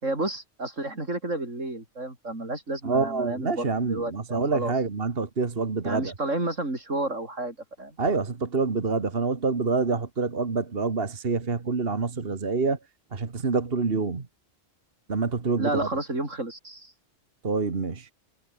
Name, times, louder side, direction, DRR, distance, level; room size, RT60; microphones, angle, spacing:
voice 1, 0.0-4.7 5.8-8.0 15.6-16.9, right 2 dB, 85° right, 6.5 m, -31 dB
voice 2, 2.8-6.1 8.0-12.8 13.1-14.3 15.1-15.9 17.4-18.1, right 4 dB, 50° right, 2.0 m, -27 dB
omnidirectional pair, 1.3 m